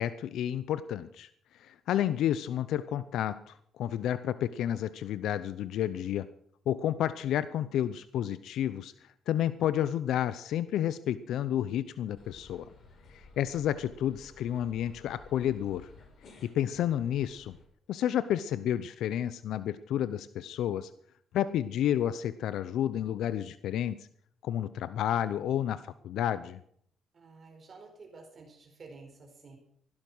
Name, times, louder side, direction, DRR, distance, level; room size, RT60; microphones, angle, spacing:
voice 1, 0.0-6.3 6.7-12.7 13.1-15.9 16.4-17.6 17.9-20.9 21.3-24.1 24.4-26.6, left 11 dB, 80° left, 15 dB, 0.7 m, -31 dB
sound 1, 12.2-17.6, left 3 dB, 55° left, 5.2 m, -55 dB
voice 2, 27.1-29.6, right 3 dB, 45° right, 1 dB, 4.6 m, -51 dB
16.0 x 12.0 x 6.2 m, 0.65 s
cardioid pair, 90°, 0 cm